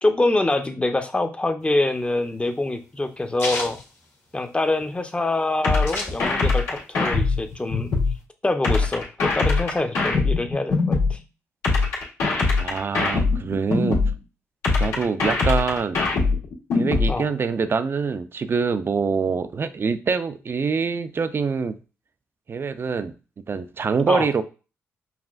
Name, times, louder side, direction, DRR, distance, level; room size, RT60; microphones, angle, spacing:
voice 1, 0.0-3.8 4.3-7.9 8.4-11.2 14.8-15.0 17.1-17.3 24.1-24.3, left 2 dB, 20° left, 0.7 m, -25 dB
sound 1, 1.7-4.8 5.1-5.2 5.4-6.7 7.1-8.2, left 2 dB, 50° left, 1.5 m, -33 dB
sound 2, 5.6-8.1 8.6-11.1 11.6-14.1 14.6-17.1, left 3 dB, 80° left, 1.7 m, -21 dB
voice 2, 12.6-14.0 14.8-16.0 16.7-21.8 22.5-24.4, right 5 dB, 45° right, 0.5 m, -25 dB
5.7 x 2.4 x 2.5 m
supercardioid pair, 55°, 6 cm